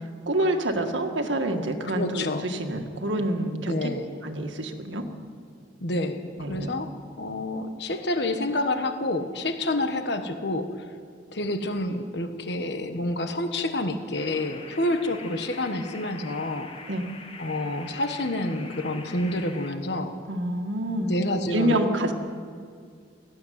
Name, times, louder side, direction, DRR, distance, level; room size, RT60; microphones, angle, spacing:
voice 1, 0.3-3.9 4.2-5.0 6.4-6.7 16.9-17.1 20.3-21.2 21.5-22.1, right 1 dB, 80° right, 4 dB, 1.8 m, -27 dB
voice 2, 1.9-2.5 3.7-4.1 5.8-6.9 7.2-10.9 11.3-16.7 17.4-20.1 21.0-21.8, left 1 dB, 60° left, 7 dB, 1.3 m, -28 dB
sound 1, 14.1-19.7, left 4 dB, 30° left, 1.5 m, -44 dB
19.0 x 15.0 x 9.5 m, 2.2 s
head